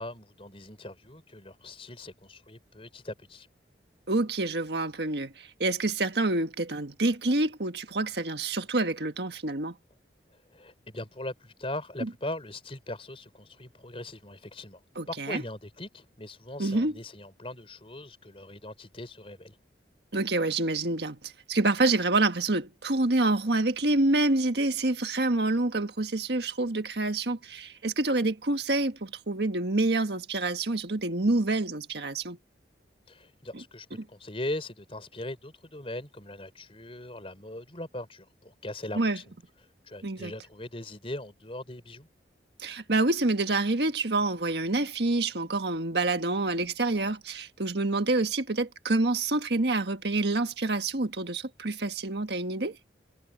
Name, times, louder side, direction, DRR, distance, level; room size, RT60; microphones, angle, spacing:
voice 1, 0.0-3.5 10.3-14.8 15.1-19.6 33.1-39.3 39.8-42.1, left 1 dB, 30° left, 4.4 m, -40 dB
voice 2, 4.1-9.7 12.0-12.1 14.9-15.4 16.6-16.9 20.1-32.4 33.5-33.6 34.0-34.1 38.9-39.2 40.0-40.3 42.6-52.8, right 2 dB, 65° right, 1.6 m, -27 dB
head